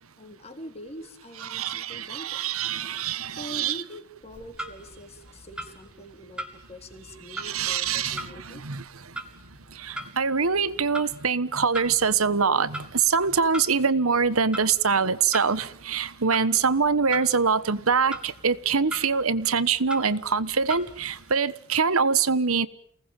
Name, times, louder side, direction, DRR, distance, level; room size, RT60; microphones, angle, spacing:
voice 1, 0.2-2.4 3.3-8.6, equal, 30° left, 3.6 m, -43 dB
voice 2, 1.4-3.8 7.3-8.8 9.7-22.7, right 5 dB, 85° right, 1.3 m, -24 dB
Clock, 4.2-21.4, right 1 dB, 5° right, 2.3 m, -42 dB
29.0 x 19.5 x 9.1 m
head